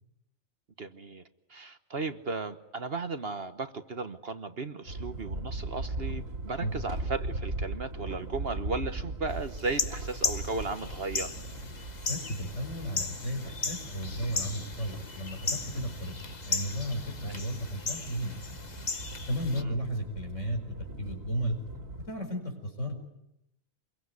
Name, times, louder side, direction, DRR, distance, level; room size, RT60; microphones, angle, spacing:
voice 1, 0.8-1.2 1.5-11.3 17.2-17.3 19.6-19.7, right 3 dB, 50° right, 9 dB, 1.4 m, -35 dB
sound 1, 4.9-22.1, right 2 dB, 70° right, 3.0 m, -39 dB
sound 2, 9.6-19.6, left 4 dB, 35° left, 1.3 m, -36 dB
voice 2, 12.1-16.1 16.5-18.7 19.3-21.6 22.1-23.0, equal, 60° left, 5 dB, 5.3 m, -34 dB
26.0 x 22.5 x 9.7 m, 0.85 s
omnidirectional pair, 1.4 m